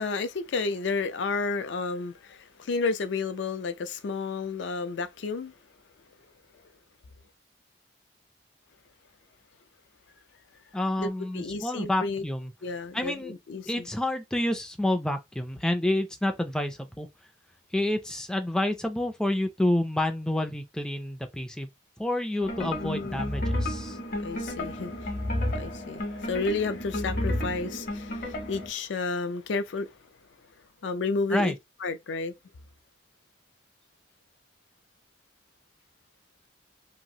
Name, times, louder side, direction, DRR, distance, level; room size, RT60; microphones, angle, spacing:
voice 1, 0.0-5.6 11.0-11.1 11.3-12.2 12.6-13.9 22.6-23.2 24.0-30.0 30.8-31.5 31.8-32.3, left 4 dB, 75° left, 0.4 m, -31 dB
voice 2, 10.7-12.5 12.9-13.3 13.7-17.1 17.7-21.7 22.0-24.0 31.3-31.5, left 1 dB, 5° left, 0.3 m, -28 dB
sound 1, 22.4-28.7, left 1 dB, 50° left, 0.8 m, -32 dB
3.0 x 2.4 x 2.7 m
head